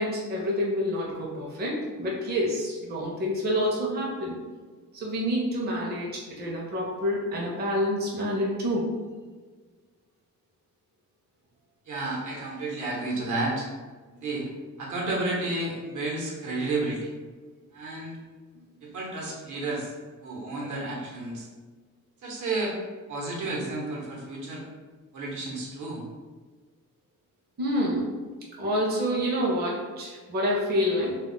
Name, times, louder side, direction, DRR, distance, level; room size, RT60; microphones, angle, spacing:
voice 1, 0.0-4.4 4.9-8.9 27.6-28.1 28.6-31.2, equal, 30° right, -3 dB, 0.6 m, -28 dB
voice 2, 11.9-13.7 14.2-14.5 14.8-17.1 17.7-18.2 18.8-19.9 20.2-21.5 22.2-22.7 23.1-24.6 25.1-26.0, right 2 dB, 70° right, -2 dB, 0.9 m, -31 dB
2.3 x 2.0 x 3.7 m, 1.4 s
wide cardioid pair, 125°, 31 cm